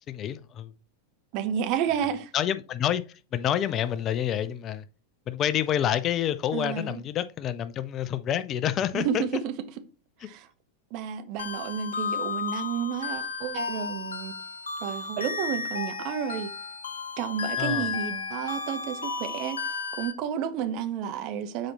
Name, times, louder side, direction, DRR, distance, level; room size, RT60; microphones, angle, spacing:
voice 1, 0.1-0.7 2.3-4.8 5.3-9.2 17.6-17.9, left 10 dB, 30° left, 0.5 m, -28 dB
voice 2, 1.3-2.3 6.5-7.0 8.9-9.5 10.2-10.5 10.9-14.3 14.8-16.5 17.2-21.7, right 8 dB, 40° right, 1.0 m, -31 dB
sound 1, 11.4-20.1, left 5 dB, 70° left, 1.0 m, -33 dB
7.7 x 4.2 x 4.2 m
figure-of-eight pair, 90°, 0 cm